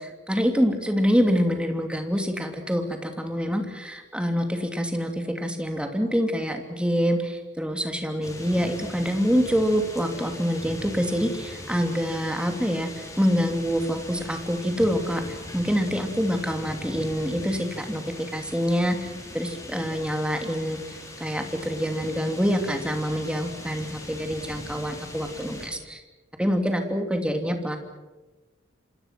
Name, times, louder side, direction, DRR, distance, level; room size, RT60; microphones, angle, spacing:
voice 1, 0.3-12.9 13.2-20.8 21.2-26.0 26.4-27.8, equal, 5° right, 5 dB, 2.9 m, -26 dB
sound 1, 8.2-25.7, left 1 dB, 15° left, 5.5 m, -41 dB
27.5 x 26.5 x 6.1 m, 1.2 s
head